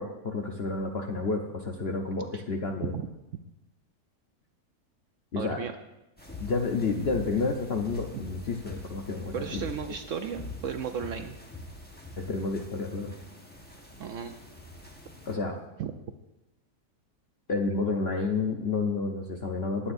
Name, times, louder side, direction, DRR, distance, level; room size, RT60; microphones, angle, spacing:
voice 1, 0.0-2.9 5.3-5.6 6.4-9.6 12.2-13.1 15.3-15.5 17.5-19.9, left 3 dB, 50° left, 2 dB, 0.8 m, -30 dB
voice 2, 5.4-5.7 9.3-11.3 14.0-14.3 15.8-15.9, right 7 dB, 65° right, 7 dB, 0.8 m, -34 dB
sound 1, 6.2-15.4, left 2 dB, 5° left, 1.0 m, -44 dB
21.0 x 8.6 x 2.6 m, 0.95 s
omnidirectional pair, 1.7 m